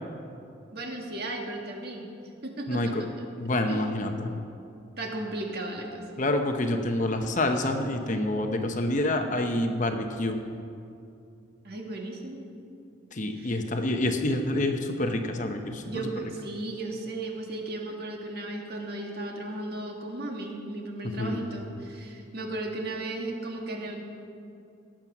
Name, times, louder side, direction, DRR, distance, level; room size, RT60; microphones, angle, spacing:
voice 1, 0.7-2.1 2.4-3.3 3.7-3.9 5.0-6.1 11.6-12.4 13.4-13.6 15.8-24.0, right 2 dB, 50° right, 1 dB, 1.7 m, -35 dB
voice 2, 2.7-3.0 3.4-4.4 6.2-10.4 13.1-15.8 21.2-21.4, left 1 dB, 40° left, 5 dB, 0.8 m, -27 dB
18.0 x 7.5 x 6.1 m, 2.6 s
head